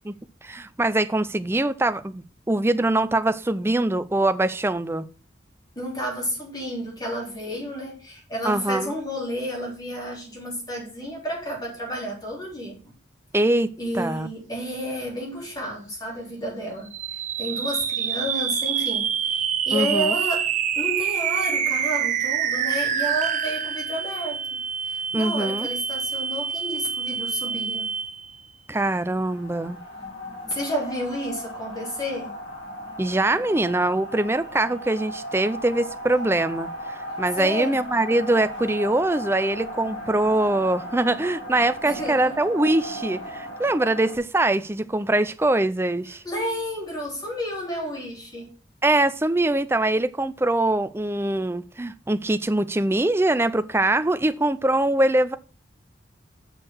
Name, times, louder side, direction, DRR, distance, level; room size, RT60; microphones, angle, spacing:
voice 1, 0.4-5.1 8.4-8.9 13.3-14.3 19.7-20.1 25.1-25.7 28.7-29.8 33.0-46.2 48.8-55.4, right 2 dB, 15° right, 0.5 m, -23 dB
voice 2, 5.8-12.9 13.8-16.9 17.4-20.5 20.8-24.4 24.9-27.9 30.5-32.3 37.4-37.8 41.8-42.3 46.2-48.5, equal, 20° left, 3.7 m, -31 dB
sound 1, 16.9-28.4, right 7 dB, 40° right, 0.8 m, -26 dB
sound 2, 29.2-44.2, equal, 85° left, 3.8 m, -36 dB
6.6 x 6.5 x 6.1 m
head